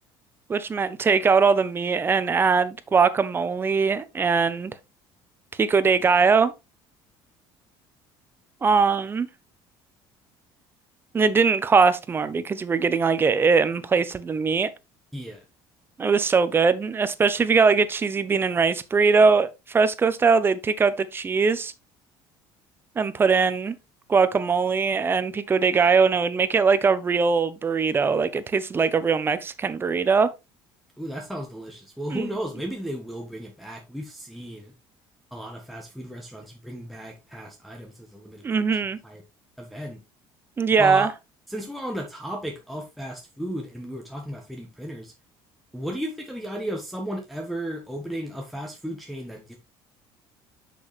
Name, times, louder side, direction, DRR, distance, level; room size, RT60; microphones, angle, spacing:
voice 1, 0.5-4.7 5.6-6.5 8.6-9.3 11.1-14.7 16.0-21.7 23.0-23.7 24.1-30.3 32.1-32.3 38.4-39.0 40.6-41.1, right 5 dB, 20° right, 0.7 m, -21 dB
voice 2, 15.1-15.4 31.0-34.7 35.3-38.4 39.0-39.2 39.6-40.0 40.8-41.1 41.5-45.1 45.7-49.5, equal, ahead, 1.2 m, -34 dB
6.3 x 6.2 x 3.2 m
cardioid pair, 130°, 10 cm